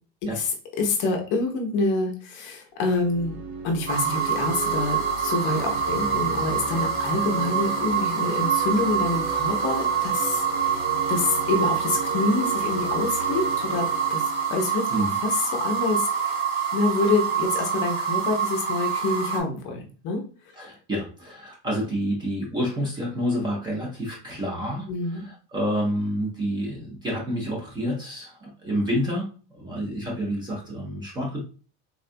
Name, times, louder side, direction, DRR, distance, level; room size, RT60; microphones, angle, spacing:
voice 1, 0.8-3.4 3.6-14.2 14.5-16.4 16.7-20.2 24.9-25.3, left 3 dB, 35° left, 2 dB, 0.6 m, -27 dB
sound 1, 2.9-15.6, right 3 dB, 85° right, 0.8 m, -36 dB
sound 2, 3.9-19.4, right 7 dB, 40° right, 0.9 m, -26 dB
voice 2, 20.5-29.3 29.5-31.4, equal, 15° right, -2 dB, 0.5 m, -28 dB
3.6 x 2.2 x 2.5 m, 0.38 s
cardioid pair, 175°, 32 cm